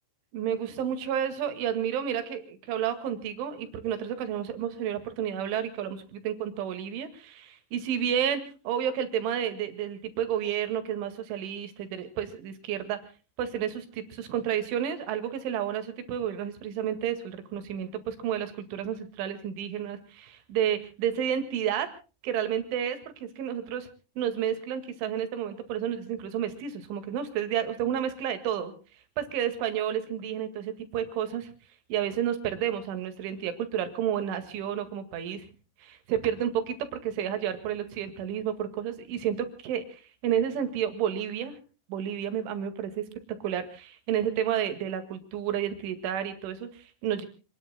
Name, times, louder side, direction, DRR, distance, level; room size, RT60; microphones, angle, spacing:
voice 1, 0.3-13.0 13.4-21.9 22.2-23.9 24.2-28.7 29.2-31.5 31.9-35.5 35.8-41.6 41.9-43.1 43.4-47.3, right 9 dB, 80° right, 9 dB, 4.4 m, -31 dB
28.0 x 20.5 x 2.2 m, 0.36 s
omnidirectional pair, 5.4 m